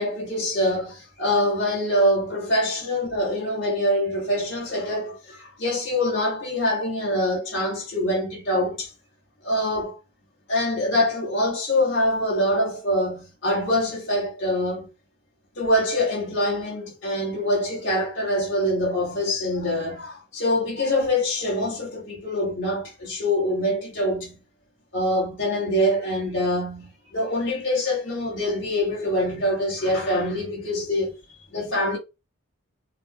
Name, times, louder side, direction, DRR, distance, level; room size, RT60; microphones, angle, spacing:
voice 1, 0.0-8.9 9.4-10.0 10.5-14.9 15.5-24.4 24.9-31.1 31.5-32.0, left 1 dB, 60° left, 1.6 m, -24 dB
5.7 x 2.0 x 2.4 m
head